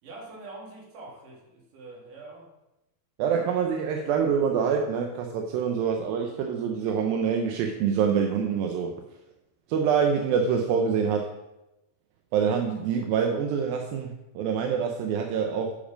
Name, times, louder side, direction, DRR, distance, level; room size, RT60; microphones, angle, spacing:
voice 1, 0.0-2.5, right 2 dB, 65° right, -2 dB, 3.6 m, -44 dB
voice 2, 3.2-8.9 9.7-11.3 12.3-15.7, right 6 dB, 85° right, 3 dB, 2.5 m, -26 dB
10.0 x 5.3 x 5.1 m, 0.95 s
omnidirectional pair, 4.1 m